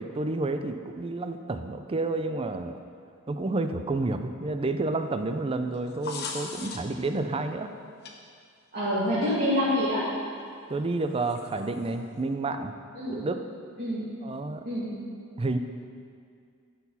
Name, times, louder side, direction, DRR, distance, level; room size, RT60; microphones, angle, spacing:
voice 1, 0.0-2.8 3.3-7.7 10.7-12.7 13.1-13.4 14.2-14.6 15.4-15.6, right 2 dB, 25° right, 8 dB, 0.4 m, -30 dB
sound 1, 5.7-7.1 8.0-8.1 9.3-9.4 11.3-11.9, left 4 dB, 50° left, 0.9 m, -38 dB
voice 2, 8.7-10.0 13.0-13.2 13.8-14.0 14.6-14.9, left 1 dB, 40° right, -11 dB, 2.3 m, -26 dB
12.5 x 4.6 x 5.6 m, 2.3 s
head